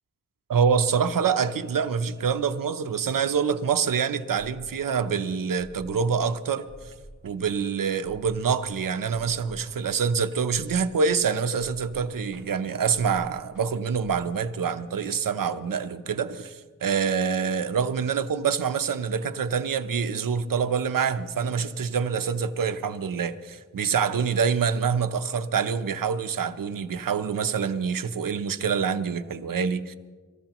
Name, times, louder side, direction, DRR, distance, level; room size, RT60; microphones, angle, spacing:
voice 1, 0.5-6.9 7.2-30.0, right 6 dB, 90° right, 0.7 m, -26 dB
sound 1, 4.4-14.2, right 1 dB, 75° left, 4.4 m, -50 dB
25.0 x 14.0 x 3.0 m
wide cardioid pair, 85°, 32 cm